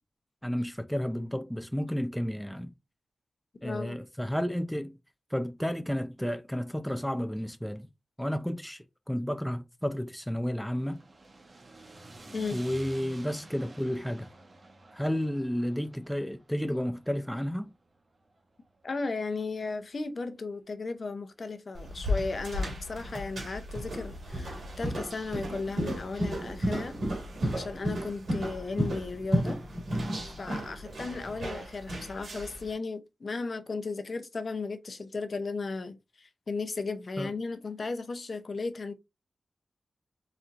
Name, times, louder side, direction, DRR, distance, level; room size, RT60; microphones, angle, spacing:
voice 1, 0.4-2.7 3.6-4.9 5.3-7.9 8.2-11.0 12.5-14.3 14.9-17.7 37.2-37.3, equal, ahead, 0.4 m, -32 dB
voice 2, 3.6-4.0 12.3-12.6 18.8-27.0 27.5-29.6 30.3-38.9, left 4 dB, 55° left, 0.7 m, -35 dB
sound 1, 10.7-18.9, right 2 dB, 45° right, 1.3 m, -51 dB
sound 2, 21.7-32.7, equal, 85° right, 2.4 m, -33 dB
4.2 x 3.9 x 2.5 m
wide cardioid pair, 100°, 0 cm